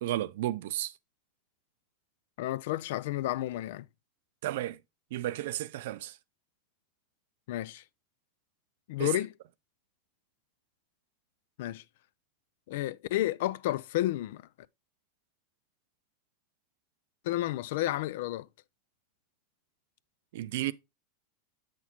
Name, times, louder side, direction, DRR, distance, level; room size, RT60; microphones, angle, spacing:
voice 1, 0.0-0.9 4.4-4.8 5.1-6.2 9.0-9.1 20.3-20.7, right 14 dB, 75° right, 0.5 m, -33 dB
voice 2, 2.4-3.9 7.5-7.8 8.9-9.3 11.6-11.8 12.7-14.4 17.2-18.5, left 15 dB, 70° left, 0.3 m, -31 dB
7.2 x 6.0 x 3.0 m
hypercardioid pair, 115°, 0 cm